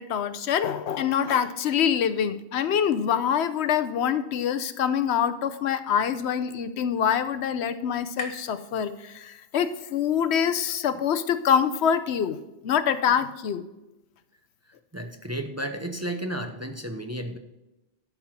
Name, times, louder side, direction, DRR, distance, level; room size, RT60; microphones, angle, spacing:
voice 1, 0.0-12.4 12.6-13.7, left 8 dB, 80° left, 12 dB, 0.9 m, -25 dB
sound 1, 5.8-9.6, left 3 dB, 40° left, 1.2 m, -44 dB
voice 2, 14.9-17.4, right 1 dB, 15° right, 5 dB, 0.6 m, -32 dB
11.5 x 4.7 x 5.7 m, 0.99 s
omnidirectional pair, 1.1 m